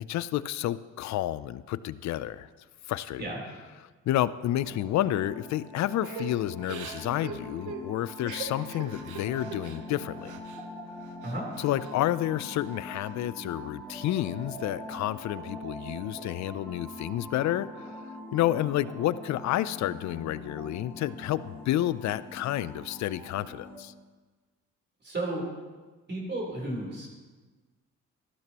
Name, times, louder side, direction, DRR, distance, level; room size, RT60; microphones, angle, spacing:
voice 1, 0.0-2.5 2.9-3.3 4.1-10.4 11.6-17.9 18.3-23.9, left 13 dB, 65° left, 16 dB, 0.5 m, -30 dB
sound 1, 4.6-23.8, left 1 dB, 10° left, 3.2 m, -43 dB
Crying sobbing / Breathing, 6.0-10.6 11.0-12.0 12.4-13.1, right 6 dB, 85° right, 1.0 m, -43 dB
voice 2, 25.0-25.4 26.1-27.1, right 1 dB, 35° right, -2 dB, 3.7 m, -33 dB
14.0 x 12.0 x 3.0 m, 1.3 s
cardioid pair, 90°, 30 cm